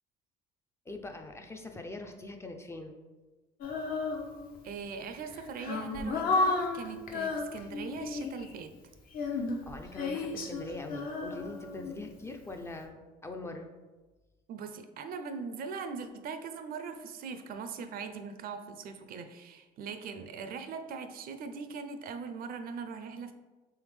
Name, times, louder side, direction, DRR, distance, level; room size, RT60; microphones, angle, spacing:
voice 1, 0.9-3.0 9.3-13.7, left 2 dB, 15° left, 4 dB, 0.3 m, -43 dB
Female singing, 3.6-4.7 5.3-8.5 9.1-12.3, left 3 dB, 60° left, 0.6 m, -33 dB
voice 2, 4.6-8.7 14.5-23.3, right 5 dB, 60° right, 8 dB, 0.4 m, -41 dB
3.4 x 3.4 x 3.1 m, 1.2 s
cardioid pair, 110°, 17 cm